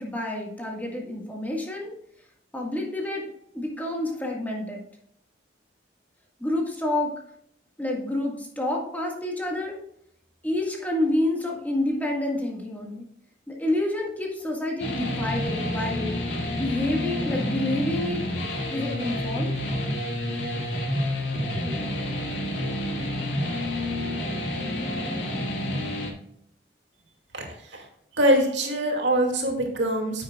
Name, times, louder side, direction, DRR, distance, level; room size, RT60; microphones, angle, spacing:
voice 1, 0.0-1.9 2.5-3.3 3.5-4.8 6.4-7.1 7.8-9.8 10.4-13.1 13.5-16.1 16.5-18.2 18.7-19.5, left 1 dB, 10° left, -1 dB, 1.8 m, -28 dB
sound 1, 14.8-26.1, left 1 dB, 85° left, 2.0 m, -29 dB
voice 2, 28.1-30.2, right 1 dB, 85° right, 1 dB, 2.5 m, -23 dB
10.5 x 8.1 x 2.4 m, 0.71 s
head